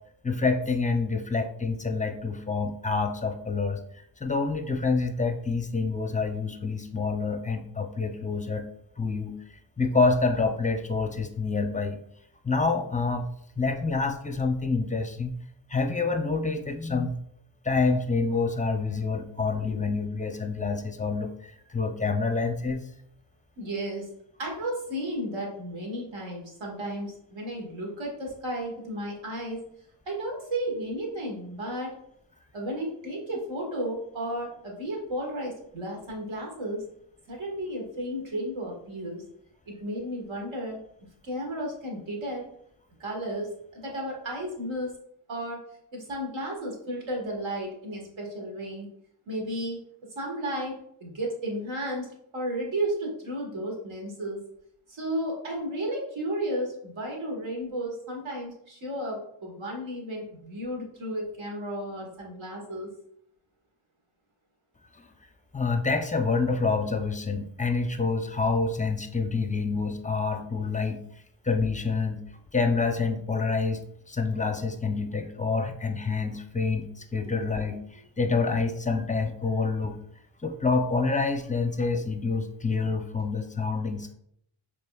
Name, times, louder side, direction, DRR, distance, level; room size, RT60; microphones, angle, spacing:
voice 1, 0.2-3.8 4.2-8.7 9.0-9.4 9.8-12.0 12.4-13.3 13.6-15.3 15.7-17.1 17.6-22.8 65.5-71.0 71.4-72.2 72.5-73.8 74.1-80.0 80.4-84.1, left 4 dB, 15° left, 6 dB, 0.5 m, -27 dB
voice 2, 23.6-24.1 24.4-29.6 30.1-31.9 32.5-36.8 37.3-39.2 39.7-40.8 41.2-42.5 43.0-44.9 45.3-45.6 45.9-48.9 49.3-49.8 50.1-54.4 54.9-62.9, right 1 dB, 70° right, -1 dB, 1.5 m, -33 dB
5.2 x 3.1 x 2.3 m, 0.71 s
cardioid pair, 45°, 48 cm